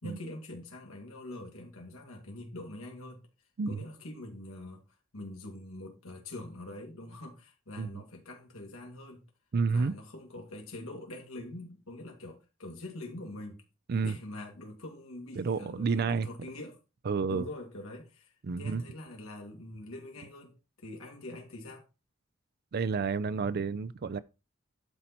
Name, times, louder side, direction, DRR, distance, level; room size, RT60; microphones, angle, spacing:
voice 1, 0.0-3.2 3.7-4.8 5.1-9.2 9.7-13.6 14.0-16.8 17.3-21.8, left 1 dB, 85° left, 2.6 m, -44 dB
voice 2, 9.5-9.9 13.9-14.2 15.4-16.3 17.1-17.5 18.4-18.8 22.7-24.2, right 5 dB, 50° right, 0.4 m, -30 dB
11.0 x 4.4 x 4.3 m
head